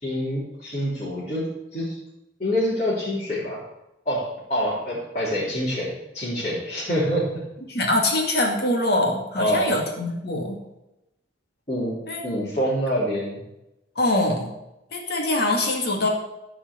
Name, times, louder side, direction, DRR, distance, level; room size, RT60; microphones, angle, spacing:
voice 1, 0.0-2.0 2.4-3.6 4.1-7.4 9.4-9.8 11.7-13.4, equal, 35° left, -10 dB, 3.4 m, -26 dB
voice 2, 7.7-10.6 12.1-12.2 14.0-14.5 14.9-16.1, left 1 dB, 55° left, 1 dB, 2.4 m, -23 dB
14.0 x 4.9 x 8.0 m, 0.92 s
head